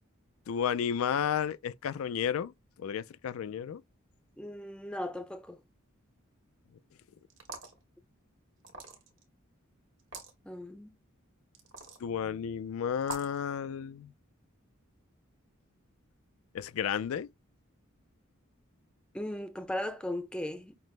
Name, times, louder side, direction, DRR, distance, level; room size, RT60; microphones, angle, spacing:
voice 1, 0.5-2.5 2.8-3.8 12.0-14.1 16.5-17.3, left 8 dB, 90° left, 0.4 m, -32 dB
voice 2, 4.4-5.6 10.5-10.9 19.1-20.7, left 1 dB, 5° left, 0.5 m, -37 dB
sound 1, 7.3-7.8 8.6-9.2 10.0-10.3 11.6-12.0 13.0-13.4, right 2 dB, 65° right, 1.3 m, -43 dB
5.8 x 2.0 x 3.2 m
head